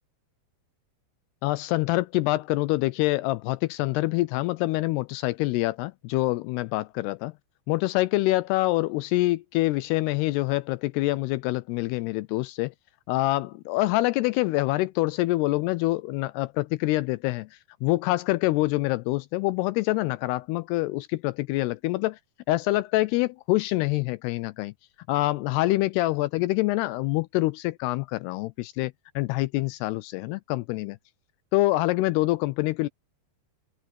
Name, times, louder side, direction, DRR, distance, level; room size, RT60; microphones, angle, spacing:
voice 1, 1.4-7.3 7.7-12.7 13.1-17.5 17.8-22.2 22.5-24.7 25.1-31.0 31.5-32.9, left 19 dB, 85° left, 2.4 m, -26 dB
open air
omnidirectional pair, 5.1 m